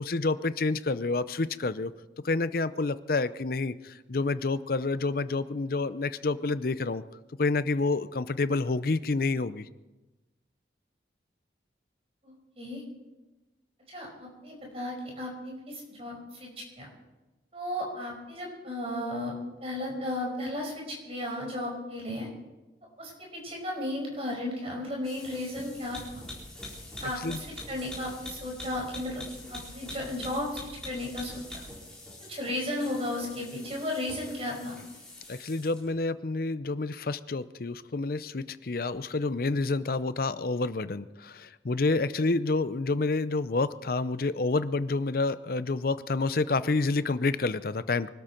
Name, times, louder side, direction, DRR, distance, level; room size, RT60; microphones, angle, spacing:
voice 1, 0.0-1.9 2.2-7.0 7.4-9.7 27.2-27.4 35.3-48.1, left 3 dB, 50° left, 14 dB, 0.6 m, -28 dB
voice 2, 12.2-12.8 13.9-16.5 16.8-16.9 17.5-19.3 19.6-22.3 23.0-26.0 27.0-31.4 32.2-34.8, left 1 dB, 30° right, 0 dB, 5.5 m, -34 dB
sound 1, 25.0-35.9, left 1 dB, 5° left, 4.4 m, -44 dB
24.0 x 13.0 x 4.5 m, 1.1 s
head